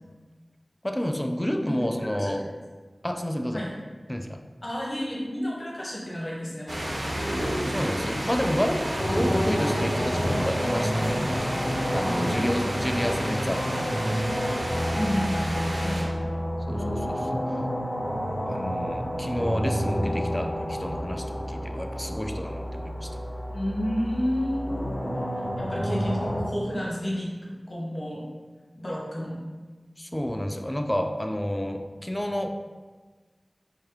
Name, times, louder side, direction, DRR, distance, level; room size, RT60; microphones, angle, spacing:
voice 1, 0.8-2.5 3.0-3.6 4.1-4.4 7.7-14.0 16.7-17.4 18.5-23.1 30.0-32.5, equal, 15° left, 5 dB, 0.3 m, -30 dB
voice 2, 4.6-6.9 12.0-12.6 14.9-16.1 23.5-25.0 25.3-27.3 27.7-28.2 28.8-29.5, equal, 50° left, -5 dB, 0.9 m, -31 dB
sound 1, 6.7-16.0, equal, 85° right, 1.0 m, -30 dB
sound 2, 8.9-26.4, equal, 75° left, 1.3 m, -29 dB
3.5 x 2.6 x 3.5 m, 1.4 s
wide cardioid pair, 55°, 0 cm